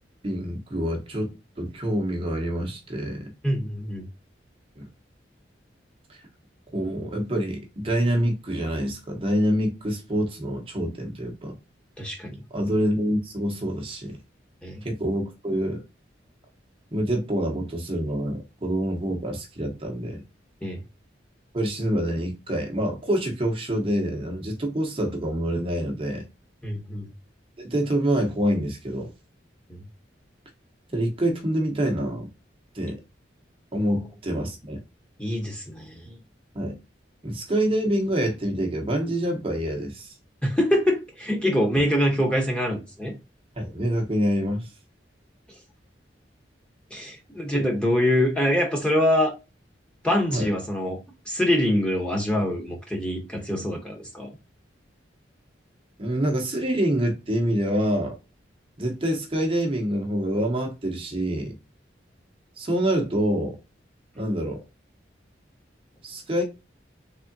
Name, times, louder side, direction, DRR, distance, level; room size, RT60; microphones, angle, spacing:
voice 1, 0.2-3.3 4.8-4.9 6.1-6.2 6.7-11.5 12.5-14.2 14.8-15.8 16.9-20.2 21.5-26.2 27.6-29.1 30.9-32.3 32.7-33.0 33.7-34.8 36.5-36.8 37.2-40.1 41.7-41.9 43.6-44.7 47.5-47.6 50.3-50.5 56.0-58.2 58.8-61.6 62.6-63.6 64.2-64.6 66.0-66.4, equal, 30° right, 0.7 m, -26 dB
voice 2, 3.4-4.1 12.0-12.4 14.6-14.8 20.6-20.8 26.6-27.1 29.7-29.8 35.2-36.2 40.4-43.1 46.9-49.3 50.0-51.0 51.3-54.3, left 1 dB, 5° left, 0.9 m, -24 dB
3.5 x 3.3 x 2.6 m
head